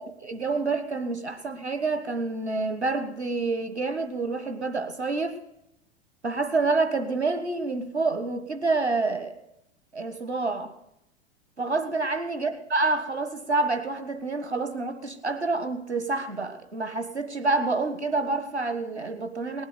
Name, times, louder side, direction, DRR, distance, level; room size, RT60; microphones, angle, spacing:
voice 1, 0.0-5.4 6.2-9.4 9.9-10.7 11.6-19.7, right 3 dB, 90° right, 8 dB, 1.6 m, -28 dB
19.0 x 8.1 x 6.8 m, 0.81 s
figure-of-eight pair, 90°, 32 cm